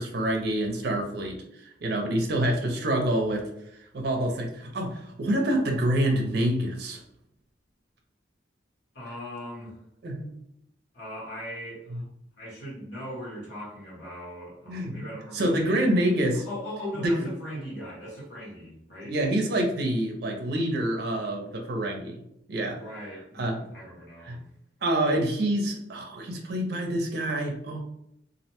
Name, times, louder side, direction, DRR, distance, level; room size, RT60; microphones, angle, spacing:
voice 1, 0.0-3.5 3.9-7.0 10.0-10.3 11.9-12.0 14.7-15.0 15.3-16.5 16.9-17.3 19.0-22.2 22.5-22.8 23.4-23.6 24.3-24.4 24.8-27.8, right 1 dB, 60° right, 1 dB, 0.5 m, -27 dB
voice 2, 8.9-9.8 10.9-12.0 12.4-19.2 22.7-24.4, equal, 70° left, -6 dB, 1.1 m, -39 dB
2.4 x 2.1 x 2.8 m, 0.76 s
head